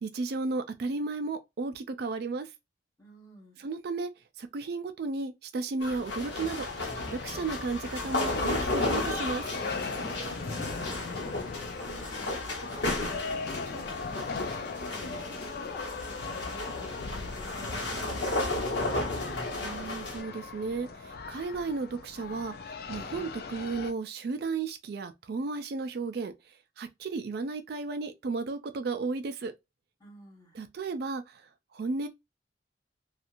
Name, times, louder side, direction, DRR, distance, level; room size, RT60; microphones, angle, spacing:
voice 1, 0.0-2.5 3.6-4.1 4.4-6.7 7.2-9.4 19.6-22.5 22.9-26.3 26.8-29.5 30.5-31.4 31.7-32.1, right 3 dB, 60° right, 0.4 m, -34 dB
voice 2, 3.0-3.6 10.0-11.4 11.8-15.1 15.5-19.0 30.0-30.6, right 1 dB, 20° left, 1.4 m, -50 dB
sound 1, 5.8-20.2, left 2 dB, 85° left, 1.1 m, -34 dB
sound 2, 6.1-23.9, left 4 dB, 55° left, 0.4 m, -39 dB
2.9 x 2.4 x 2.5 m
head